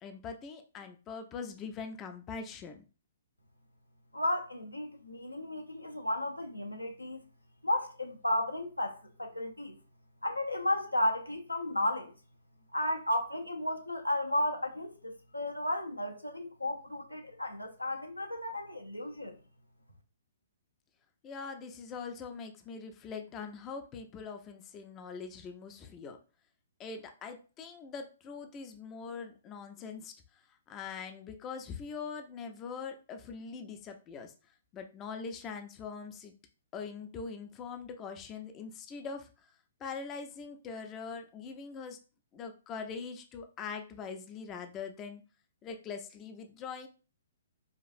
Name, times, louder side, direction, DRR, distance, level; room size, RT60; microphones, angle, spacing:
voice 1, 0.0-2.8 21.2-26.2 26.8-36.3 36.7-39.5 39.8-42.0 42.3-45.2 45.6-46.9, left 5 dB, 20° left, 0.5 m, -42 dB
voice 2, 4.1-7.2 7.6-9.8 10.2-12.1 12.7-19.4, left 1 dB, 85° left, 0.7 m, -33 dB
4.9 x 2.4 x 2.6 m
figure-of-eight pair, 120°, 0 cm